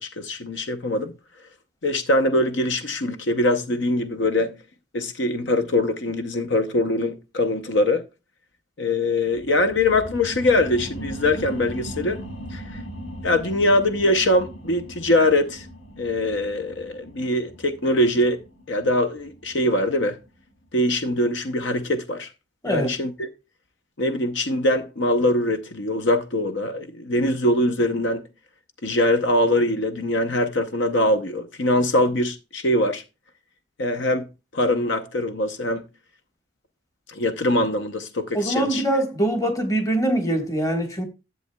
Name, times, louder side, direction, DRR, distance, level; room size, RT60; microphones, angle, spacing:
voice 1, 0.0-1.1 1.8-4.6 4.9-8.0 8.8-12.2 12.5-12.8 13.2-15.7 16.0-18.4 18.7-20.2 20.7-22.3 22.7-23.3 24.0-28.2 28.8-33.0 33.8-34.3 34.5-35.8 37.1-38.8, left 1 dB, 70° left, 0.7 m, -22 dB
sound 1, 9.2-20.4 20.8-20.9, equal, 85° left, 2.0 m, -39 dB
voice 2, 38.3-41.0, right 1 dB, 15° left, 1.4 m, -23 dB
11.0 x 7.7 x 2.2 m
head